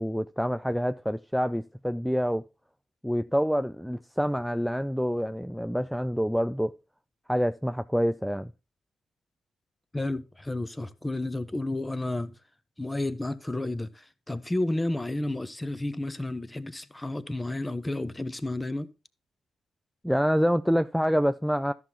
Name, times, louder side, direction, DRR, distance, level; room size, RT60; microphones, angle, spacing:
voice 1, 0.0-2.4 3.0-6.8 7.3-8.5 20.0-21.7, equal, ahead, 0.4 m, -27 dB
voice 2, 9.9-12.3 12.8-18.9, left 2 dB, 20° left, 0.9 m, -31 dB
13.5 x 5.7 x 2.9 m
hypercardioid pair, 40°, 0 cm